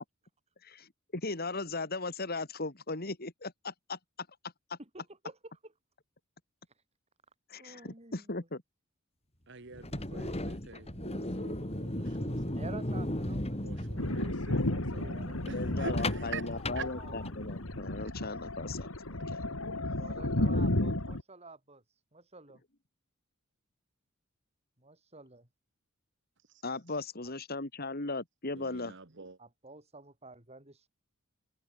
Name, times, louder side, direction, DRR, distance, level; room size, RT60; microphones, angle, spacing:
voice 1, 0.6-4.0 4.7-4.8 7.5-8.6 15.5-19.4 26.6-29.0, left 3 dB, 50° left, 2.8 m, -38 dB
voice 2, 4.8-5.5 6.7-6.8 7.6-8.5 12.5-13.6 14.7-16.3 16.7-17.5 20.0-22.6 24.8-25.5 29.4-30.9, right 2 dB, 30° right, 6.6 m, -51 dB
voice 3, 9.5-12.6 13.6-15.2 15.5-16.4 16.7-16.9 28.5-29.4, right 4 dB, 60° right, 1.7 m, -45 dB
sound 1, 9.7-17.6, left 1 dB, 30° left, 4.4 m, -36 dB
Thunder, 14.0-21.2, left 1 dB, 85° left, 2.9 m, -33 dB
head